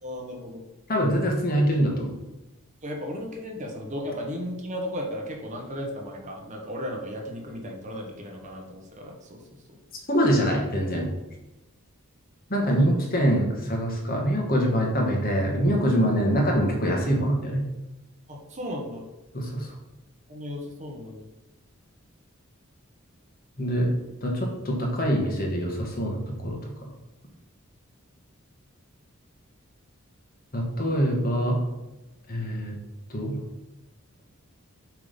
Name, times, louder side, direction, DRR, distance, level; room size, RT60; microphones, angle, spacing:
voice 1, 0.0-0.6 2.8-9.4 12.6-12.9 18.3-19.0 20.3-21.3, equal, 35° right, 1 dB, 1.1 m, -35 dB
voice 2, 0.9-2.1 10.1-11.1 12.5-17.6 19.3-19.7 23.6-23.9 24.2-26.6 30.5-31.6 32.3-32.7 33.1-33.4, equal, 45° left, 0 dB, 1.5 m, -24 dB
7.6 x 3.7 x 5.3 m, 1.0 s
head